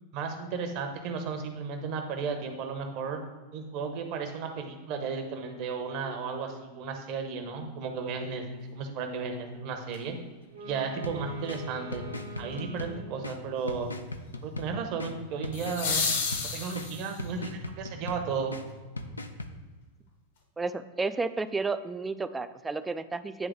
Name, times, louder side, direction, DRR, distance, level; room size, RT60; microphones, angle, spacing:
voice 1, 0.1-3.2 3.5-10.1 10.6-12.0 12.4-13.9 14.4-16.1 16.5-18.5, right 5 dB, 45° right, 5 dB, 0.9 m, -34 dB
sound 1, 9.9-10.0 15.5-17.3 19.5-19.6, left 5 dB, 60° left, 1.1 m, -31 dB
Wind instrument woodwind instrument, 10.4-13.4, right 2 dB, 70° right, 1.0 m, -44 dB
sound 2, 11.0-19.5, left 1 dB, 80° left, 0.5 m, -40 dB
voice 2, 20.6-23.5, right 3 dB, 10° right, 12 dB, 0.3 m, -32 dB
9.4 x 3.3 x 3.6 m, 1.3 s
figure-of-eight pair, 90°, 0 cm